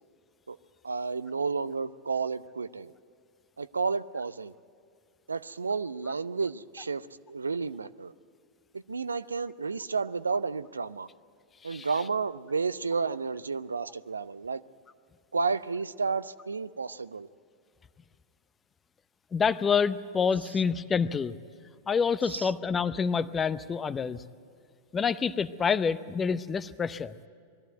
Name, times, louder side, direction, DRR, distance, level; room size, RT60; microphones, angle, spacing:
voice 1, 0.8-2.9 3.6-4.5 5.3-8.1 8.7-11.1 11.6-14.6 15.3-17.3 22.3-22.5, right 4 dB, 75° right, 0.5 m, -31 dB
voice 2, 19.3-21.3 21.9-24.2 24.9-27.1, left 6 dB, 20° left, 0.7 m, -27 dB
21.5 x 14.0 x 9.1 m
figure-of-eight pair, 90°, 0 cm